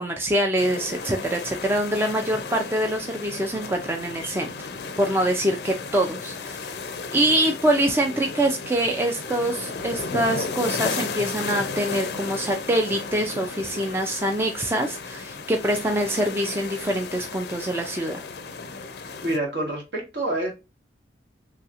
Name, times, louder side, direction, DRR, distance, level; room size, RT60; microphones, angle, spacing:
voice 1, 0.0-4.7 5.0-6.8 7.1-18.2, right 1 dB, 15° right, 0.3 m, -25 dB
sound 1, 0.6-19.4, left 4 dB, 60° left, 0.4 m, -34 dB
voice 2, 19.2-20.5, right 1 dB, 65° right, 1.3 m, -27 dB
3.0 x 2.8 x 2.4 m
head